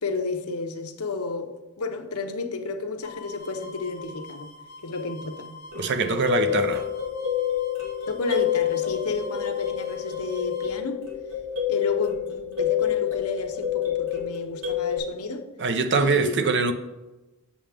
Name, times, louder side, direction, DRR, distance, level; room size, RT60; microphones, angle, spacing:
voice 1, 0.0-4.5 4.8-5.5 8.1-11.0 11.7-15.5 16.0-16.4, left 3 dB, 80° left, 0.9 m, -31 dB
sound 1, 3.0-10.7, left 1 dB, 40° left, 0.6 m, -45 dB
voice 2, 5.7-6.8 15.6-16.7, right 4 dB, 55° right, 0.7 m, -23 dB
sound 2, 5.7-15.0, left 10 dB, 85° right, 2.7 m, -28 dB
7.3 x 7.1 x 3.5 m
head